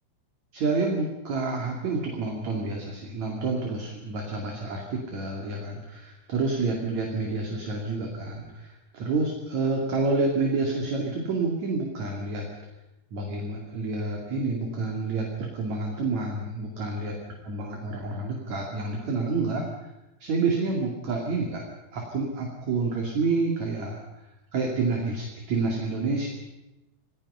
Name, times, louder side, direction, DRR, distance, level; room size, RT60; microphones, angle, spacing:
voice 1, 0.5-12.5 13.1-17.2 17.4-19.9 20.2-21.6 21.9-24.0 24.5-26.3, right 3 dB, 45° right, 0 dB, 3.2 m, -28 dB
27.5 x 18.0 x 5.6 m, 0.97 s
omnidirectional pair, 5.4 m